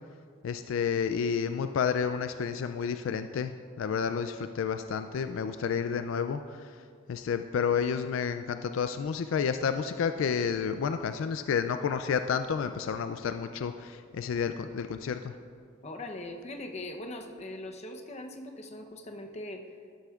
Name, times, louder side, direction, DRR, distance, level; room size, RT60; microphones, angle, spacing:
voice 1, 0.4-6.8 7.1-15.3, left 6 dB, 70° left, 9 dB, 0.3 m, -30 dB
voice 2, 15.8-19.6, left 1 dB, 35° left, 4 dB, 0.7 m, -40 dB
13.0 x 10.0 x 2.4 m, 2.2 s
head